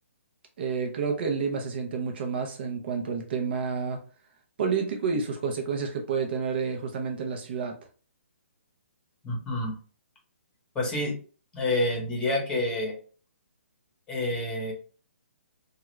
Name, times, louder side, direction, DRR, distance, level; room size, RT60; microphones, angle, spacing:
voice 1, 0.6-4.0 4.6-7.8, right 5 dB, 50° right, 0.7 m, -29 dB
voice 2, 9.2-9.7 10.7-11.1 11.5-12.9 14.1-14.7, left 1 dB, 10° left, 1.1 m, -28 dB
2.8 x 2.4 x 3.1 m
hypercardioid pair, 145°, 7 cm